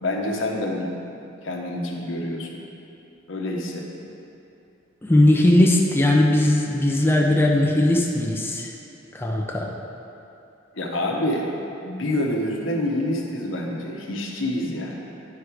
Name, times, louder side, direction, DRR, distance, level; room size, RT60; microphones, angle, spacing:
voice 1, 0.0-0.9 1.4-2.6 3.3-3.9 10.8-11.5 11.8-15.1, left 1 dB, 90° left, 0 dB, 1.0 m, -27 dB
voice 2, 5.0-8.7 9.1-9.7, left 1 dB, 10° left, -1 dB, 0.6 m, -19 dB
9.7 x 4.7 x 4.9 m, 2.7 s
head